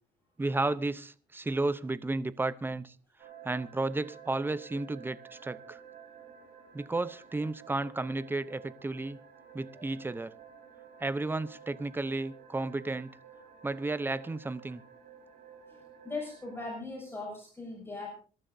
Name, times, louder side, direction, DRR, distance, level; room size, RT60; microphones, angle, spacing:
voice 1, 0.4-2.9 3.4-5.8 6.7-9.2 9.5-10.3 11.0-13.1 13.6-14.8, right 2 dB, 15° right, 0.7 m, -33 dB
sound 1, 3.2-16.6, right 7 dB, 70° right, 6.2 m, -52 dB
voice 2, 16.0-18.1, left 3 dB, 15° left, 6.9 m, -39 dB
26.0 x 13.0 x 2.7 m
cardioid pair, 120°, 16 cm